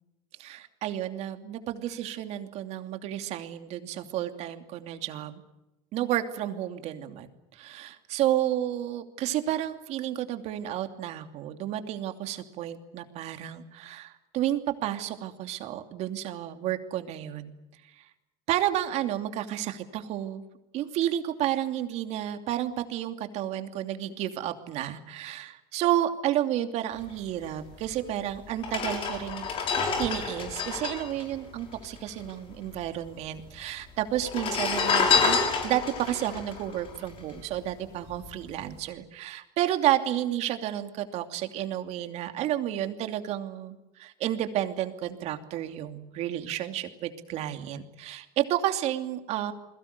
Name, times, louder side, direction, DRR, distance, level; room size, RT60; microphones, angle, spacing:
voice 1, 0.4-5.4 5.9-17.5 18.0-18.1 18.5-20.4 20.7-29.5 30.0-49.5, right 12 dB, 55° right, 7 dB, 2.8 m, -31 dB
sound 1, 27.9-28.0 28.6-32.3 32.5-32.6 32.8-33.5 34.2-37.7 38.1-38.3, left 5 dB, 40° left, 6.8 m, -28 dB
30.0 x 22.0 x 6.8 m, 0.96 s
cardioid pair, 140°, 14 cm